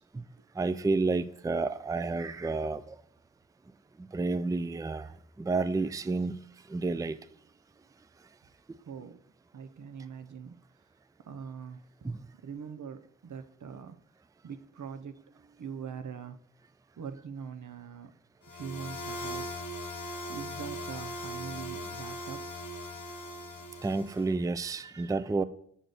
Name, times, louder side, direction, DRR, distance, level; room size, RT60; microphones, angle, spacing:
voice 1, 0.6-3.0 4.0-6.4 6.7-7.2 12.0-12.3 23.8-25.4, right 3 dB, 10° right, 0.3 m, -30 dB
voice 2, 8.9-9.2 9.5-10.6 11.3-12.1 12.4-14.0 14.4-16.4 17.0-18.1 18.5-19.5 20.3-22.6, right 6 dB, 80° right, 0.6 m, -43 dB
sound 1, 18.4-24.3, left 1 dB, 85° left, 0.9 m, -39 dB
7.7 x 6.5 x 3.9 m
wide cardioid pair, 65°, 30 cm